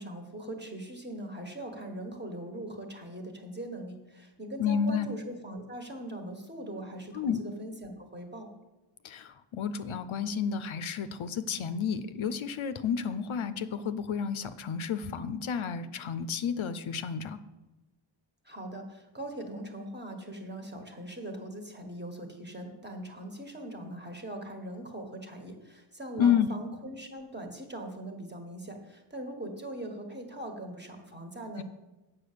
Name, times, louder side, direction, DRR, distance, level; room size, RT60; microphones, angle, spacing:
voice 1, 0.0-8.5 18.4-31.6, right 1 dB, 20° right, 3 dB, 1.3 m, -41 dB
voice 2, 4.6-5.1 7.1-7.4 9.0-17.4 26.2-26.5 31.6-31.7, left 7 dB, 75° left, 11 dB, 0.6 m, -30 dB
7.9 x 5.7 x 6.7 m, 1.1 s
wide cardioid pair, 110°, 49 cm